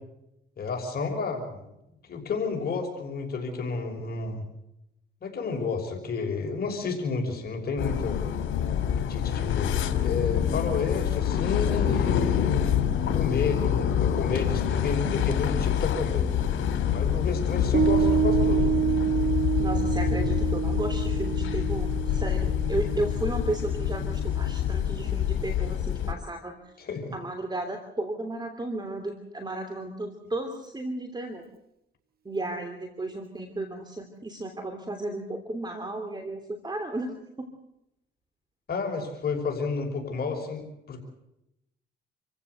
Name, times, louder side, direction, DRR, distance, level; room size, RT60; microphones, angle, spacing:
voice 1, 0.6-1.7 2.0-4.4 5.2-8.3 9.0-9.7 10.0-16.4 16.9-18.7 26.8-27.2 38.7-41.0, left 4 dB, 50° left, 2 dB, 5.9 m, -31 dB
sound 1, 7.8-26.1, left 9 dB, 80° left, 2.8 m, -26 dB
Piano, 17.7-24.5, right 9 dB, 50° right, 1.1 m, -28 dB
voice 2, 19.6-26.5 27.1-31.4 32.2-37.5, right 2 dB, 20° right, 6 dB, 3.1 m, -34 dB
28.5 x 15.5 x 8.1 m, 0.86 s
cardioid pair, 90°, 20 cm